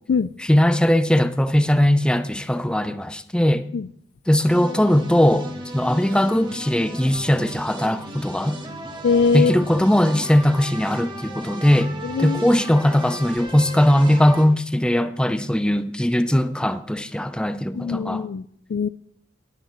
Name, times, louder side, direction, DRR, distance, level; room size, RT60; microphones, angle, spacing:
voice 1, 0.5-3.7 4.3-5.5 5.7-8.6 9.3-11.9 12.2-18.2, left 1 dB, 5° left, 0.5 m, -19 dB
sound 1, 4.4-14.4, right 1 dB, 25° right, 1.7 m, -36 dB
voice 2, 9.0-9.6 12.0-12.4 17.7-18.9, left 5 dB, 60° left, 0.4 m, -22 dB
19.0 x 9.1 x 3.1 m
head